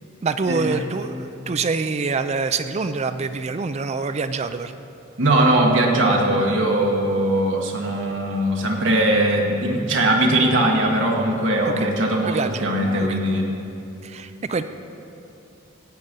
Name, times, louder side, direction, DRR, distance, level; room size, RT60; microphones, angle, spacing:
voice 1, 0.2-4.7 11.6-11.9 12.3-13.2 14.0-14.6, right 4 dB, 30° right, 10 dB, 0.4 m, -26 dB
voice 2, 5.2-13.5, right 1 dB, 60° right, -1 dB, 1.5 m, -20 dB
16.5 x 8.6 x 5.3 m, 2.9 s
head